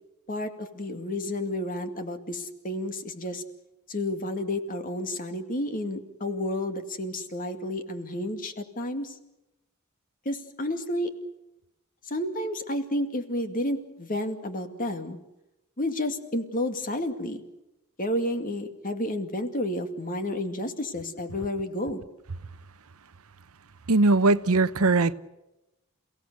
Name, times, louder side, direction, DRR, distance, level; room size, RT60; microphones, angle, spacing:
voice 1, 0.3-3.4 3.9-9.2 10.2-11.1 12.0-15.2 15.8-17.4 18.0-22.0, left 1 dB, 40° left, 2.3 m, -31 dB
voice 2, 23.9-25.1, right 3 dB, 70° right, 0.9 m, -20 dB
29.0 x 17.0 x 8.1 m
head